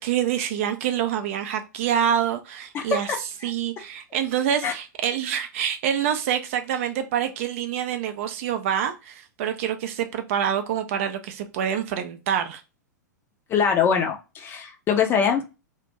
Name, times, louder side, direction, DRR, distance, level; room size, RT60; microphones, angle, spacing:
voice 1, 0.0-3.1 3.4-12.6, right 9 dB, 45° right, 0.4 m, -26 dB
voice 2, 2.7-3.2 4.6-4.7 13.5-15.4, left 6 dB, 20° left, 0.5 m, -23 dB
2.4 x 2.1 x 2.9 m
figure-of-eight pair, 100°, 10 cm